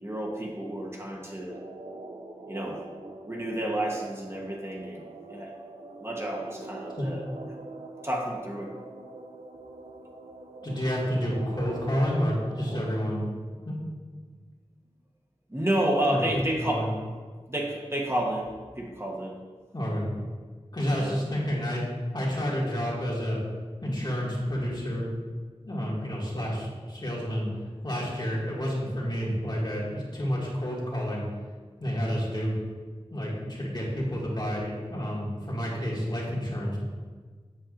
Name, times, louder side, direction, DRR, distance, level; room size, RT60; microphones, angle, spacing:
voice 1, 0.0-1.6 2.5-2.8 3.3-5.5 6.0-7.2 8.0-8.7 15.5-16.9 17.5-18.5 18.8-19.4 20.9-21.2, right 1 dB, 25° right, -1 dB, 1.1 m, -30 dB
sound 1, 1.5-13.0, right 2 dB, 80° right, 0.7 m, -44 dB
voice 2, 10.6-13.3 13.6-13.8 16.1-16.2 16.6-16.9 19.7-20.1 20.7-21.8 22.1-23.4 23.8-25.1 25.6-27.5 27.8-31.2 31.8-32.5 33.1-36.8, equal, 40° left, -5 dB, 2.1 m, -29 dB
8.4 x 7.4 x 2.6 m, 1.5 s
wide cardioid pair, 60°, 11 cm